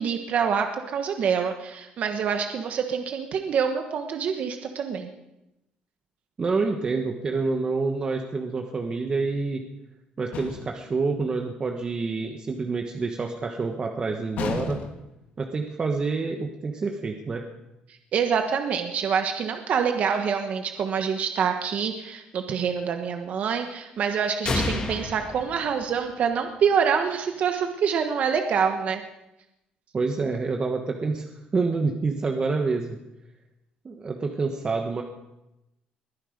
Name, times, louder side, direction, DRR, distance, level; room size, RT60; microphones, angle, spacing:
voice 1, 0.0-5.1 18.1-29.0, right 7 dB, 55° right, 5 dB, 1.2 m, -26 dB
voice 2, 6.4-9.6 10.2-14.8 15.4-17.4 29.9-33.0 33.8-35.0, right 4 dB, 30° right, 3 dB, 1.2 m, -27 dB
sound 1, 10.3-10.9 14.4-15.2, left 7 dB, 65° left, 1.7 m, -33 dB
sound 2, 24.4-26.4, left 2 dB, 30° left, 2.5 m, -30 dB
21.5 x 10.0 x 5.1 m, 0.92 s
cardioid pair, 120°, 3 cm